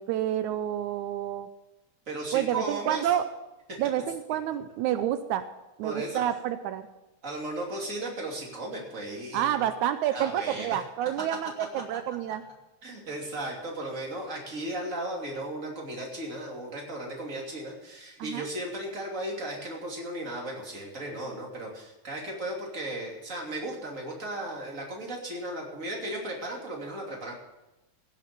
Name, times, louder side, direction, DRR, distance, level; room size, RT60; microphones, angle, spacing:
voice 1, 0.0-1.5 2.3-3.2 3.8-5.5 5.8-6.9 9.3-12.4 18.2-18.5, right 11 dB, 85° right, 11 dB, 2.0 m, -29 dB
voice 2, 2.1-3.1 3.7-3.8 5.8-6.2 7.2-9.7 10.1-10.8 12.8-27.3, right 1 dB, 25° right, -1 dB, 3.0 m, -36 dB
16.0 x 7.4 x 6.7 m, 1.0 s
omnidirectional pair, 3.4 m